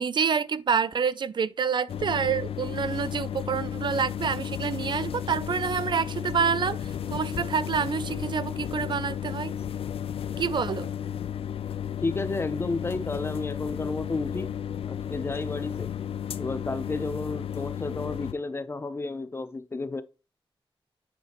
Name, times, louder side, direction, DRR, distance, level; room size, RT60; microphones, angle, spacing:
voice 1, 0.0-9.6 10.4-10.9, right 6 dB, 55° right, 0.4 m, -27 dB
sound 1, 1.9-18.3, left 9 dB, 90° left, 0.4 m, -33 dB
voice 2, 12.0-14.5 14.9-15.9 16.4-20.0, left 3 dB, 25° left, 0.6 m, -32 dB
8.1 x 5.0 x 2.9 m
wide cardioid pair, 160°, 10 cm